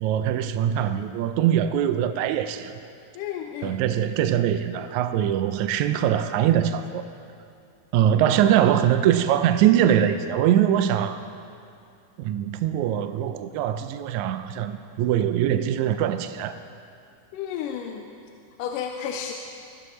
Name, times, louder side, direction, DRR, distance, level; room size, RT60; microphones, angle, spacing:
voice 1, 0.0-2.7 3.6-7.0 7.9-11.2 12.2-16.6, right 10 dB, 80° right, 10 dB, 1.7 m, -22 dB
voice 2, 3.2-3.8 8.1-8.3 17.3-18.1 18.6-19.3, left 8 dB, 85° left, 3 dB, 2.2 m, -32 dB
21.5 x 12.5 x 3.1 m, 2.5 s
omnidirectional pair, 3.8 m